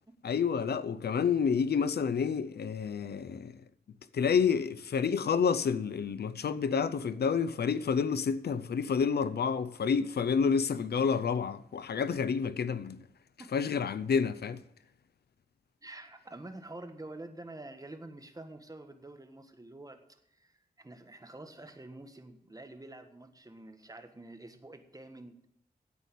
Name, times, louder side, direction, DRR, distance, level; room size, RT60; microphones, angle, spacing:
voice 1, 0.2-3.5 4.1-13.0 13.5-14.6, left 6 dB, 90° left, 0.6 m, -29 dB
voice 2, 15.8-25.4, right 2 dB, 20° right, 1.5 m, -48 dB
9.4 x 8.3 x 8.3 m
wide cardioid pair, 80°, 16 cm